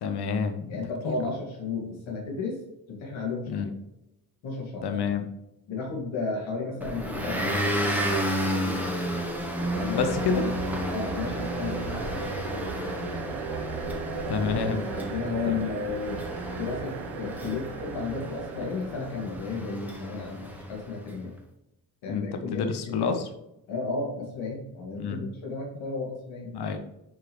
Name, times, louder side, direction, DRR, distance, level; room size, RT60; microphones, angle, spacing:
voice 1, 0.0-1.1 3.5-3.7 4.8-5.2 9.9-10.5 14.3-14.8 15.5-15.7 22.1-23.3 24.9-25.2 26.5-26.8, left 5 dB, 50° left, 7 dB, 1.1 m, -29 dB
voice 2, 0.7-2.6 2.9-3.7 4.4-4.8 5.7-8.2 8.5-9.2 9.7-10.0 10.3-10.6 10.9-13.4 14.9-16.3 16.6-21.3 22.0-23.2 23.7-26.5, left 4 dB, 65° left, -1 dB, 2.2 m, -34 dB
Motor vehicle (road) / Engine, 6.8-21.0, equal, 5° right, 1.6 m, -32 dB
sound 1, 9.6-19.9, right 6 dB, 60° right, 0.9 m, -37 dB
6.9 x 4.8 x 3.1 m, 0.91 s
hypercardioid pair, 40°, 50 cm